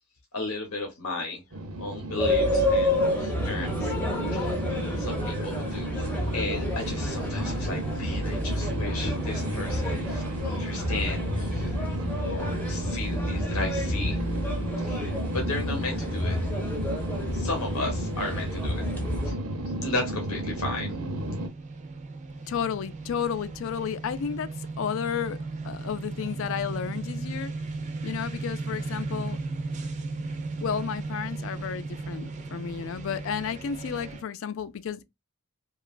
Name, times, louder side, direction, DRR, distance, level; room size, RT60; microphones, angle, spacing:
voice 1, 0.3-1.4 1.8-3.9 4.3-4.6 5.0-6.1 6.3-11.7 12.2-14.2 14.8-16.4 17.3-18.8 19.2-19.3 19.8-21.0, left 3 dB, 80° left, 0.8 m, -34 dB
sound 1, 1.5-21.5, right 1 dB, 85° right, 0.7 m, -33 dB
sound 2, 2.2-19.3, left 1 dB, 10° left, 0.6 m, -30 dB
sound 3, 16.2-34.2, right 3 dB, 30° right, 0.4 m, -37 dB
voice 2, 22.5-24.5 24.8-25.4 25.6-27.5 28.0-29.4 30.6-35.0, left 7 dB, 60° left, 0.3 m, -32 dB
2.9 x 2.3 x 2.3 m
head